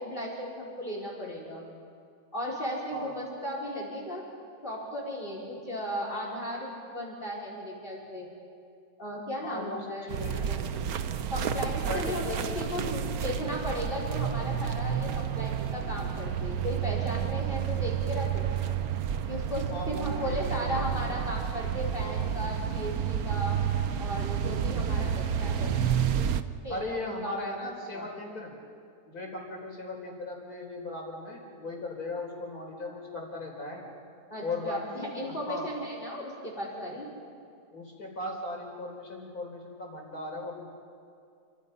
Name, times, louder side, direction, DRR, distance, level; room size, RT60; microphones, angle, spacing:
voice 1, 0.0-1.6 2.3-4.2 4.6-8.3 9.0-10.1 10.5-10.7 11.3-18.5 19.3-23.6 24.0-25.8 26.6-27.4 27.9-28.1 34.3-37.1, equal, 30° left, -2 dB, 4.7 m, -36 dB
voice 2, 9.4-10.5 11.9-13.1 19.7-21.1 26.7-28.6 29.0-33.9 34.4-35.7 37.7-40.7, left 2 dB, 60° left, 0 dB, 4.9 m, -38 dB
sound 1, 10.1-26.4, right 8 dB, 65° right, 1.3 m, -30 dB
29.5 x 25.5 x 5.5 m, 2.4 s
omnidirectional pair, 1.8 m